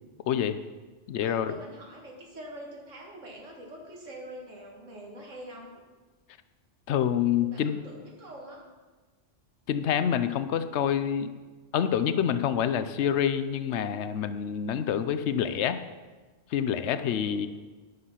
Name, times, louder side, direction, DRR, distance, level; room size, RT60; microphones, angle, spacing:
voice 1, 0.3-0.6 1.1-1.6 6.9-7.8 9.7-11.3 11.7-15.8 16.5-17.5, left 9 dB, 70° left, 12 dB, 0.9 m, -27 dB
voice 2, 1.2-5.8 7.4-8.7 17.2-17.5, right 1 dB, 85° right, -1 dB, 2.1 m, -45 dB
9.7 x 6.5 x 5.6 m, 1.3 s
omnidirectional pair, 1.3 m